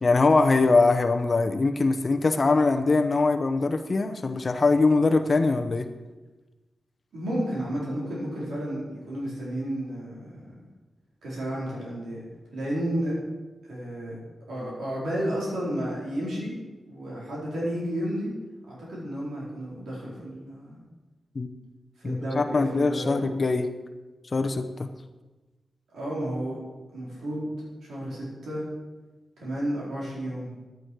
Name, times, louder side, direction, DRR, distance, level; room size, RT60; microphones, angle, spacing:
voice 1, 0.0-5.9 21.3-21.5 22.0-23.7 24.3-24.9, left 3 dB, 45° left, 6 dB, 0.8 m, -22 dB
voice 2, 7.1-10.5 11.2-12.2 12.5-13.2 13.6-14.2 14.5-16.6 16.9-18.3 18.6-20.8 22.0-23.3 25.9-26.6 26.9-28.6 29.4-30.5, right 1 dB, 90° right, -5 dB, 4.2 m, -32 dB
10.5 x 9.1 x 4.7 m, 1.2 s
cardioid pair, 60°, 0 cm